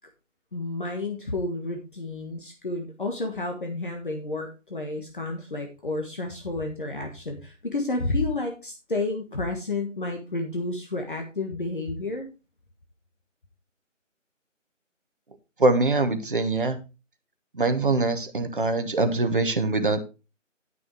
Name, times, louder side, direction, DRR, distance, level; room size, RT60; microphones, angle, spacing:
voice 1, 0.5-12.3, left 2 dB, 40° left, 3 dB, 1.5 m, -31 dB
voice 2, 15.6-16.8 17.5-20.0, right 2 dB, 40° right, 8 dB, 1.3 m, -23 dB
11.0 x 6.1 x 4.5 m, 0.30 s
figure-of-eight pair, 170°, 38 cm